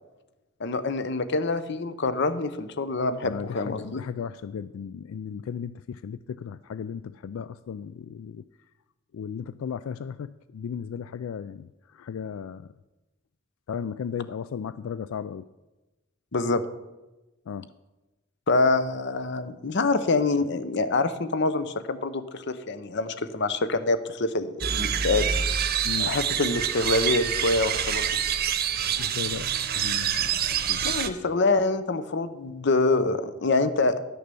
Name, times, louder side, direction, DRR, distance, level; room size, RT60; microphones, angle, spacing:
voice 1, 0.6-4.0 16.3-16.6 18.5-25.2 26.0-28.1 30.8-34.0, left 3 dB, 60° left, 12 dB, 0.8 m, -25 dB
voice 2, 3.2-8.5 9.1-12.7 13.7-15.5 17.5-17.7 25.8-26.1 29.0-31.0, left 7 dB, 90° left, 15 dB, 0.3 m, -36 dB
sound 1, 24.6-31.1, right 8 dB, 50° right, 0.8 m, -26 dB
11.0 x 6.7 x 6.8 m, 1.1 s
head